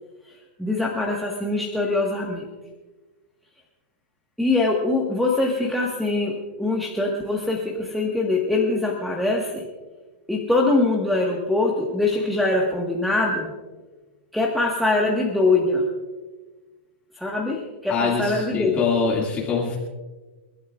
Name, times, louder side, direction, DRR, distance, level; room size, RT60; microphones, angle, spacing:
voice 1, 0.3-2.5 4.4-9.7 10.3-13.5 14.3-15.8 17.1-18.9, left 2 dB, ahead, -4 dB, 1.5 m, -23 dB
voice 2, 17.9-19.8, left 5 dB, 20° left, -4 dB, 2.3 m, -24 dB
29.5 x 12.5 x 2.4 m, 1.3 s
supercardioid pair, 155°, 7 cm